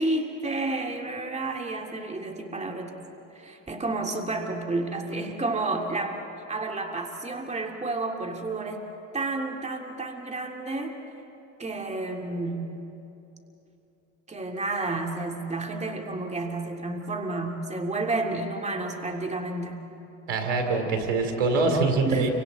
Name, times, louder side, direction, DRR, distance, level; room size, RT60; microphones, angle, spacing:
voice 1, 0.0-2.9 3.3-6.2 6.5-8.8 9.1-10.9 11.6-12.8 14.3-19.9 22.1-22.3, right 2 dB, 20° right, 2 dB, 2.5 m, -31 dB
voice 2, 20.3-22.3, right 3 dB, 85° right, 4 dB, 3.0 m, -24 dB
29.5 x 25.0 x 4.1 m, 2.9 s
hypercardioid pair, 80°, 34 cm